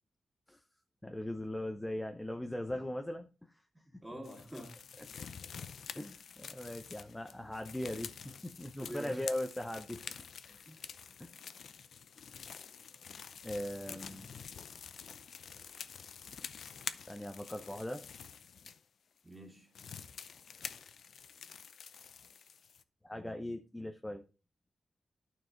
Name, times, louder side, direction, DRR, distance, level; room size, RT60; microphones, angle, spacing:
voice 1, 1.0-3.6 5.0-5.3 5.9-10.0 10.5-10.6 11.2-11.3 13.4-14.3 17.1-18.0 23.0-24.2, left 1 dB, 10° left, 0.7 m, -40 dB
voice 2, 3.8-4.8 8.8-9.2 10.6-10.9 13.8-14.4 19.2-19.7, equal, 10° right, 2.6 m, -47 dB
sound 1, 4.2-18.8 19.3-19.4 19.7-22.8, left 7 dB, 75° left, 0.5 m, -48 dB
12.0 x 4.7 x 3.8 m
wide cardioid pair, 110°, 0 cm